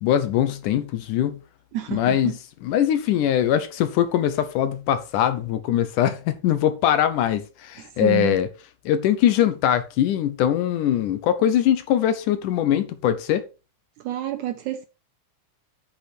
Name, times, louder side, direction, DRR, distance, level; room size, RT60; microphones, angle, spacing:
voice 1, 0.0-1.4 1.9-2.4 2.6-8.5 8.9-13.4, left 10 dB, 75° left, 2.2 m, -22 dB
voice 2, 1.7-2.4 8.0-8.4 14.0-14.9, right 15 dB, 80° right, 1.8 m, -28 dB
8.6 x 8.1 x 4.2 m
omnidirectional pair, 4.1 m